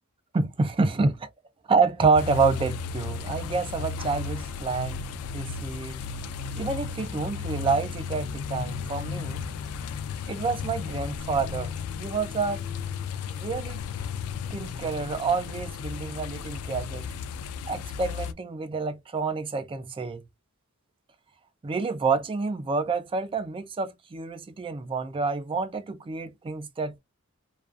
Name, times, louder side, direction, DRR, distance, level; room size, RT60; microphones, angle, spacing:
voice 1, 0.3-1.3 1.7-5.0 5.3-6.0 6.6-9.5 10.3-12.6 13.3-13.8 14.5-17.0 17.7-20.2 21.6-27.0, right 4 dB, 25° right, 0.3 m, -28 dB
sound 1, 2.1-18.3, left 6 dB, 75° left, 0.3 m, -34 dB
2.4 x 2.3 x 2.3 m
head